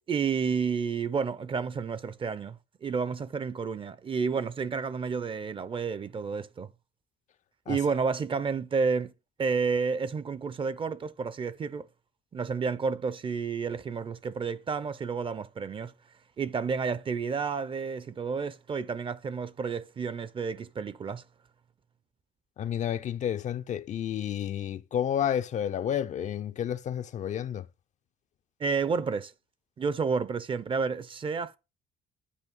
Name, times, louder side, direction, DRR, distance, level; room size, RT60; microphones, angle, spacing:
voice 1, 0.1-6.7 7.7-9.1 9.4-11.9 12.3-15.9 16.4-21.2 28.6-29.3 29.8-31.6, right 5 dB, 30° right, 0.5 m, -30 dB
voice 2, 22.6-27.6, left 9 dB, 45° left, 0.4 m, -30 dB
8.5 x 5.5 x 5.3 m
cardioid pair, 110°, 17 cm